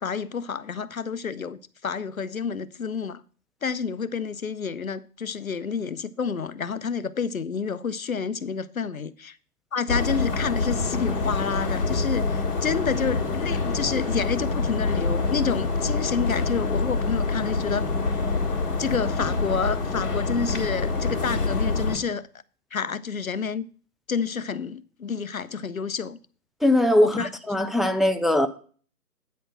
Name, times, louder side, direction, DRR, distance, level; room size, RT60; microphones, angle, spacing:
voice 1, 0.0-3.2 3.6-9.4 9.7-18.3 18.8-22.3 22.7-23.7 24.1-26.2 27.0-27.3, left 6 dB, 60° left, 0.5 m, -29 dB
sound 1, 9.9-22.0, left 3 dB, 35° left, 1.9 m, -26 dB
voice 2, 26.6-28.5, left 1 dB, ahead, 0.3 m, -21 dB
9.0 x 4.2 x 6.2 m
hypercardioid pair, 175°, 48 cm